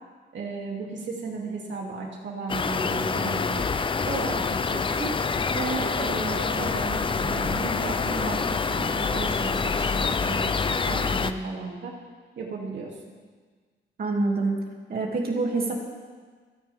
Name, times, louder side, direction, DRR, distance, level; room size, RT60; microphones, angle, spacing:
voice 1, 0.3-3.7 4.0-5.1 5.5-12.0 12.4-12.9, right 3 dB, 70° right, -2 dB, 2.8 m, -34 dB
sound 1, 2.5-11.3, left 5 dB, 25° left, 0.5 m, -26 dB
voice 2, 14.0-14.6 14.9-15.8, right 3 dB, 50° right, -1 dB, 2.6 m, -26 dB
28.5 x 9.7 x 3.6 m, 1.5 s
wide cardioid pair, 155°, 19 cm